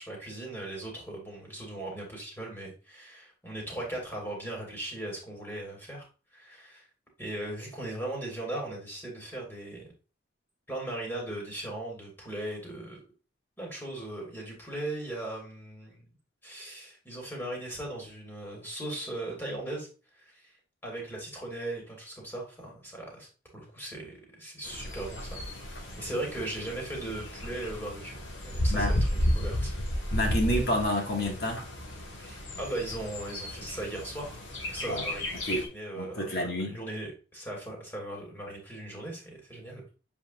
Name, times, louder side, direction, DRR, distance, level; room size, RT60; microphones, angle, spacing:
voice 1, 0.0-6.1 6.3-6.8 7.2-9.9 10.7-13.0 13.6-16.1 16.4-19.9 20.2-20.5 20.8-23.3 23.5-25.4 25.7-29.7 32.2-34.4 34.7-35.3 35.7-39.8, right 1 dB, 10° left, 2.6 m, -38 dB
Bird, 24.6-35.7, left 1 dB, 70° left, 2.2 m, -33 dB
voice 2, 30.1-31.6 34.9-35.1 35.5-35.7 35.9-36.8, left 1 dB, 50° left, 2.0 m, -29 dB
7.7 x 5.0 x 2.5 m
head